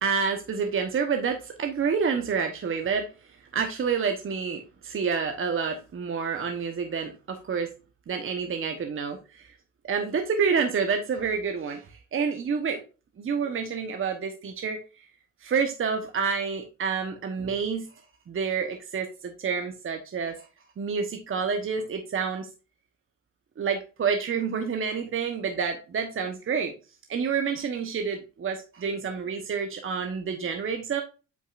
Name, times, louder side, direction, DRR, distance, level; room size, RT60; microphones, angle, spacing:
voice 1, 0.0-3.1 3.5-7.7 8.1-9.5 9.9-12.8 13.2-14.8 15.4-17.9 18.3-20.4 20.8-22.5 23.6-26.7 27.1-31.0, right 6 dB, 45° right, 5 dB, 1.1 m, -28 dB
8.2 x 5.4 x 2.5 m, 0.33 s
cardioid pair, 90°, 30 cm